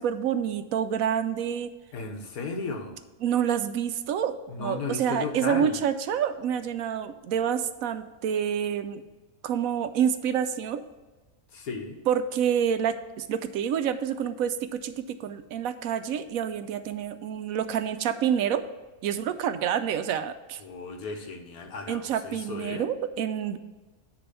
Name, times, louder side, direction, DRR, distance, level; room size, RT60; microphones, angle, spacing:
voice 1, 0.0-1.7 3.2-9.0 9.4-10.8 12.1-18.6 19.0-20.6 21.9-23.6, right 8 dB, 75° right, 10 dB, 1.0 m, -28 dB
voice 2, 1.9-3.0 4.5-5.8 11.5-12.0 20.6-22.8, left 4 dB, 90° left, 5 dB, 1.5 m, -34 dB
10.0 x 3.5 x 6.7 m, 1.2 s
omnidirectional pair, 1.5 m